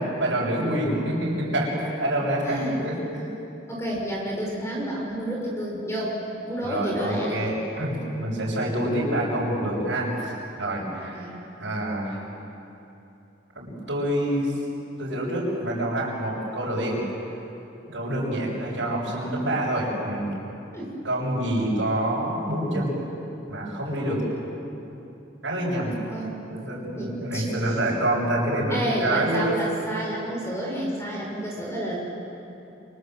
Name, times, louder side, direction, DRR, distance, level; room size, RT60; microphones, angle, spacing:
voice 1, 0.0-3.3 6.6-10.3 10.6-11.3 11.6-12.2 13.6-14.5 15.0-17.0 17.9-20.3 21.0-22.9 23.5-24.2 25.4-25.9 26.5-29.4, right 1 dB, 75° right, -6 dB, 6.9 m, -27 dB
voice 2, 2.4-2.8 3.7-6.1 6.4-7.4 11.0-11.4 20.7-21.0 26.1-26.3 27.0-27.7 28.7-32.0, right 1 dB, 15° left, -2 dB, 6.2 m, -30 dB
29.5 x 25.0 x 7.9 m, 2.9 s
head